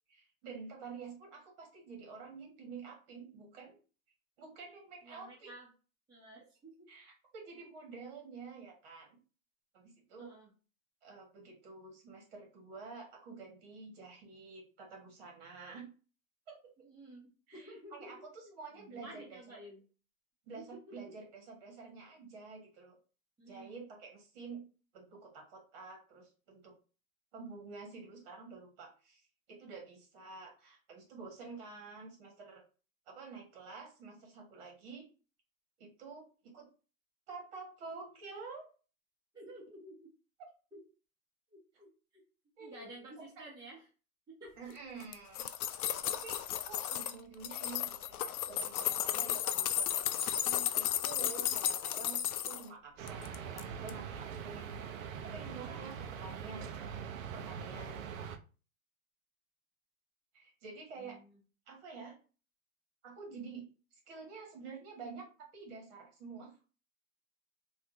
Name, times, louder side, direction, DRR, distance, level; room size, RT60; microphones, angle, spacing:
voice 1, 0.1-3.8 4.4-5.5 6.9-9.2 9.7-10.3 11.0-15.9 16.5-16.7 17.5-19.6 20.5-23.0 23.5-24.7 24.9-26.8 27.3-29.2 29.5-32.6 33.1-35.0 35.8-36.7 37.3-38.6 40.4-40.5 42.6-43.3 44.6-45.5 46.1-54.7 55.2-56.9 57.3-58.1 60.3-61.2 61.7-62.2 63.0-66.5, right 4 dB, 40° right, 1 dB, 1.4 m, -49 dB
voice 2, 5.0-5.7 6.1-6.9 7.6-7.7 10.2-10.5 16.8-18.1 18.4-19.8 20.7-21.0 23.4-23.8 39.3-40.1 40.7-40.8 41.5-42.2 42.6-43.9 44.3-44.7 61.0-61.4, right 1 dB, 10° right, -7 dB, 1.1 m, -52 dB
sound 1, 45.0-47.1 47.4-52.6 53.1-53.6 53.9-54.0, left 11 dB, 80° left, 0.5 m, -34 dB
sound 2, 53.0-58.4, right 7 dB, 60° right, 0.6 m, -43 dB
3.4 x 2.6 x 2.5 m, 0.35 s
hypercardioid pair, 155°, 43 cm